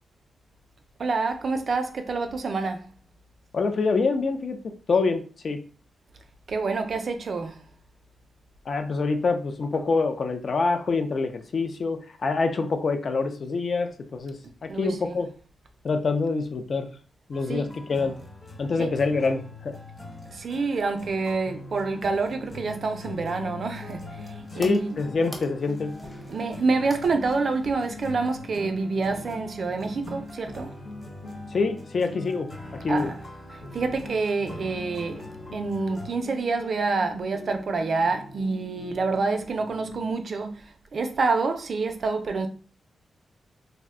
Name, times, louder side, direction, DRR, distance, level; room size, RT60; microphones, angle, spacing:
voice 1, 1.0-2.9 6.5-7.6 14.7-15.2 17.5-17.7 18.8-18.9 20.3-25.0 26.3-30.7 32.9-35.2 35.5-42.5, right 4 dB, 50° right, 0.4 m, -27 dB
voice 2, 3.5-5.6 8.7-14.4 14.6-15.3 15.8-16.9 17.3-18.2 18.6-19.8 24.5-25.9 31.5-32.5 32.8-33.1, left 4 dB, 50° left, 0.4 m, -26 dB
sound 1, 17.3-36.1, left 1 dB, 30° left, 1.0 m, -44 dB
sound 2, 21.5-33.3 33.6-40.1, left 2 dB, 85° left, 0.7 m, -43 dB
sound 3, 23.4-28.8, equal, 5° left, 0.6 m, -49 dB
2.5 x 2.1 x 3.6 m
wide cardioid pair, 130°, 0 cm